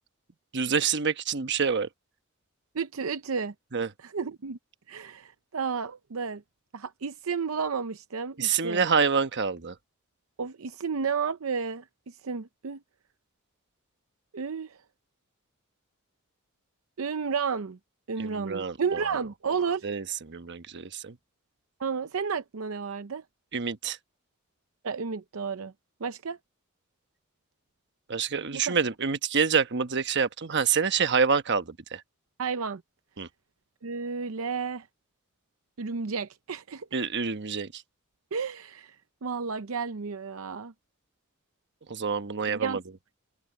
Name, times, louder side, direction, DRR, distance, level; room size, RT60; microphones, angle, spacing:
voice 1, 0.5-1.9 3.7-3.9 8.4-9.7 18.2-19.0 19.8-21.1 23.5-24.0 28.1-32.0 33.2-33.3 36.9-37.8 41.9-42.8, right 6 dB, 55° right, 1.1 m, -27 dB
voice 2, 2.7-3.5 4.0-4.6 4.9-6.4 6.7-8.8 10.4-12.8 14.3-14.8 17.0-17.8 18.1-19.9 21.8-23.2 24.8-25.7 26.0-26.4 28.5-28.8 32.4-32.8 33.8-34.9 35.8-36.9 38.3-39.0 39.2-40.7 42.5-42.8, right 5 dB, 75° right, 0.6 m, -32 dB
head